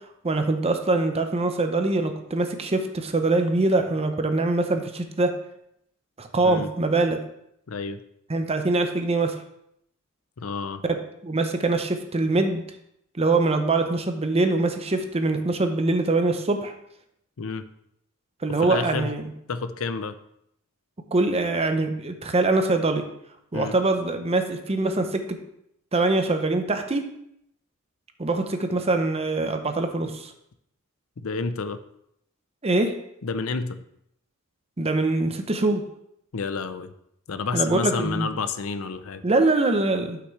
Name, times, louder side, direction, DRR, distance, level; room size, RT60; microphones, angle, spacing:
voice 1, 0.2-5.3 6.2-7.2 8.3-9.4 11.2-12.7 13.1-16.7 18.4-19.3 21.1-23.0 23.5-25.4 25.9-27.0 28.2-30.3 32.6-32.9 34.8-35.8 37.5-38.3 39.2-40.2, right 2 dB, 30° right, 6 dB, 0.7 m, -23 dB
voice 2, 7.7-8.0 10.4-10.8 17.4-17.6 18.6-19.1 19.5-20.1 23.5-23.7 31.2-31.8 33.2-33.8 36.3-36.9 37.3-39.3, left 4 dB, 65° left, 11 dB, 0.6 m, -29 dB
11.5 x 5.9 x 3.2 m, 0.75 s
head